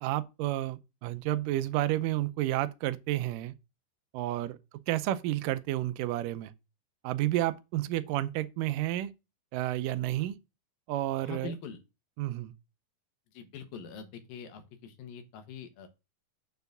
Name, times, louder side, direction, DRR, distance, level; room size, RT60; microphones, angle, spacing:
voice 1, 0.0-3.5 4.1-4.6 4.9-6.5 7.0-9.1 9.5-10.4 10.9-11.5 12.2-12.5, right 14 dB, 80° right, 2.1 m, -31 dB
voice 2, 11.2-11.8 13.3-15.9, left 5 dB, 80° left, 3.0 m, -43 dB
6.9 x 4.7 x 6.5 m
omnidirectional pair, 4.1 m